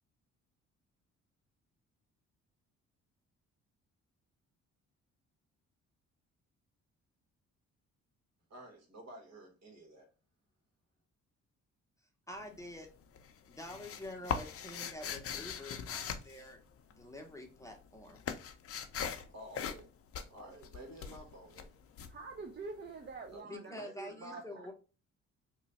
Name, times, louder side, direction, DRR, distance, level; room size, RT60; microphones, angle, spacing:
voice 1, 8.5-10.1 19.3-19.9 20.3-21.7 23.2-24.7, right 1 dB, 60° right, 2 dB, 1.5 m, -51 dB
sound 1, 12.3-12.9 13.1-17.2 17.5-23.1, left 7 dB, 50° left, 0.6 m, -41 dB
voice 2, 12.3-12.9 13.5-16.6 17.0-18.2 23.5-24.7, left 1 dB, 10° left, 2 dB, 0.8 m, -47 dB
voice 3, 22.1-23.8 24.0-24.4, right 3 dB, 35° right, 5 dB, 0.6 m, -46 dB
3.0 x 2.2 x 4.0 m, 0.32 s
cardioid pair, 90°, 30 cm